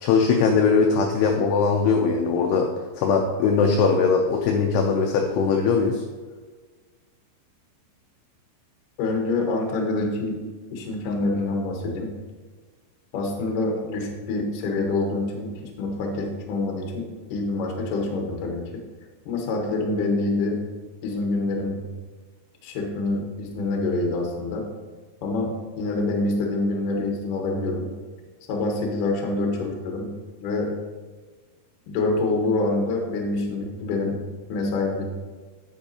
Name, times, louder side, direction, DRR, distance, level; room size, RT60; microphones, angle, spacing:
voice 1, 0.0-2.7 3.0-6.0, left 5 dB, 80° left, 2 dB, 2.5 m, -20 dB
voice 2, 9.0-10.4 10.7-12.1 13.1-18.8 19.3-20.6 21.0-21.9 22.6-24.7 25.2-27.9 28.5-30.1 30.4-30.7 31.9-34.2 34.5-35.2, left 2 dB, 65° left, 1 dB, 2.3 m, -26 dB
10.0 x 7.9 x 2.9 m, 1.4 s
omnidirectional pair, 5.2 m